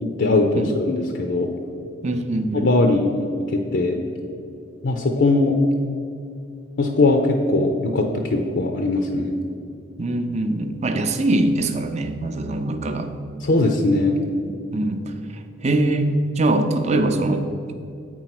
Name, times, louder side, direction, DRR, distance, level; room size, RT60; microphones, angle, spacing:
voice 1, 0.0-1.5 2.6-4.0 4.8-5.6 6.8-9.4 13.4-14.2, left 2 dB, 60° left, 3 dB, 0.6 m, -20 dB
voice 2, 2.0-2.7 10.0-13.1 14.7-15.0 15.6-17.4, right 2 dB, 35° right, 7 dB, 0.5 m, -22 dB
8.3 x 4.5 x 5.9 m, 2.6 s
head